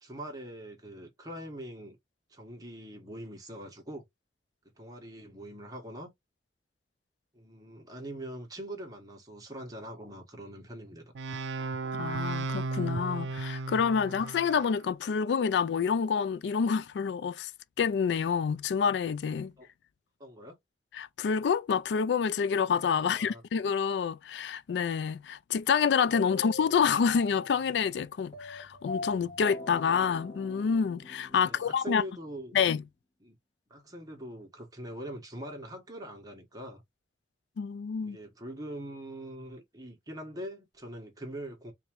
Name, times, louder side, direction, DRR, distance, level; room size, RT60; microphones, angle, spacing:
voice 1, 0.0-2.0 2.3-4.0 4.8-6.1 7.3-11.1 19.6-19.7 20.2-20.6 23.0-23.4 31.4-32.5 33.2-33.4 33.7-36.8 38.0-41.7, right 1 dB, 20° right, 1.4 m, -43 dB
sound 1, 11.2-14.8, right 3 dB, 80° right, 0.5 m, -35 dB
voice 2, 11.9-17.5 17.8-19.5 20.9-32.0 32.5-32.8 37.6-38.2, left 6 dB, 70° left, 0.3 m, -28 dB
sound 2, 26.1-32.3, left 2 dB, 35° left, 1.9 m, -43 dB
3.5 x 3.0 x 3.0 m
head